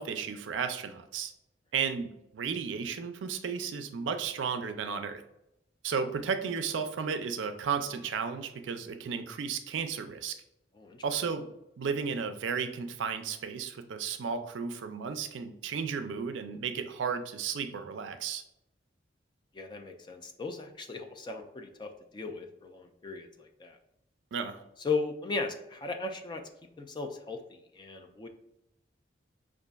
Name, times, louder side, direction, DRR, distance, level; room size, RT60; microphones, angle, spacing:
voice 1, 0.0-1.3 1.7-5.2 5.8-10.4 11.0-11.5 11.8-18.4 24.3-24.6, right 6 dB, 80° right, 8 dB, 0.4 m, -34 dB
voice 2, 19.5-23.8 24.8-26.4 26.8-28.3, left 4 dB, 25° left, 5 dB, 0.4 m, -37 dB
5.0 x 2.4 x 2.3 m, 0.83 s
head